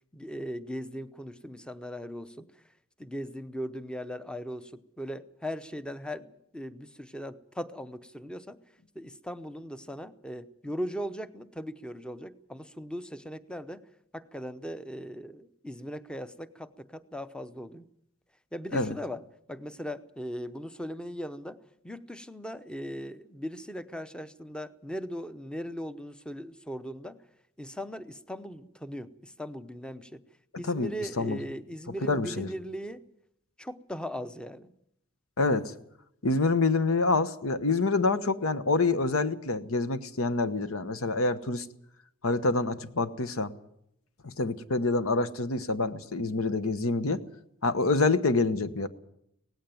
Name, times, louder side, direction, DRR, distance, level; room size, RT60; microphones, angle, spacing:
voice 1, 0.1-2.5 3.0-8.6 8.9-13.8 14.1-17.9 18.5-21.6 21.8-27.2 27.6-30.2 30.6-33.1 33.6-34.7, equal, 5° left, 12 dB, 0.7 m, -39 dB
voice 2, 32.1-32.5 35.4-35.7 36.2-41.7 42.2-43.5 44.2-47.2 47.6-48.9, left 3 dB, 70° left, 12 dB, 1.1 m, -26 dB
18.0 x 16.0 x 9.3 m, 0.77 s
head